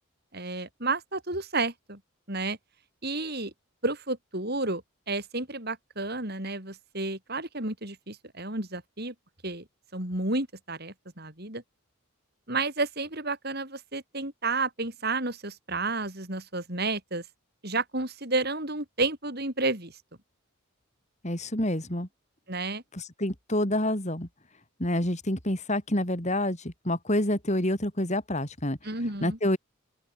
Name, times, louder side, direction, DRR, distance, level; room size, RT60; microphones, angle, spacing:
voice 1, 0.3-2.0 2.3-2.6 3.0-3.5 3.8-9.1 9.4-9.6 9.9-11.6 12.5-17.2 17.6-19.9 22.5-22.8 28.8-29.4, right 3 dB, 45° right, 6.0 m, -31 dB
voice 2, 21.2-22.1 22.9-24.3 24.8-28.8 29.2-29.6, left 1 dB, 30° left, 4.1 m, -28 dB
open air
head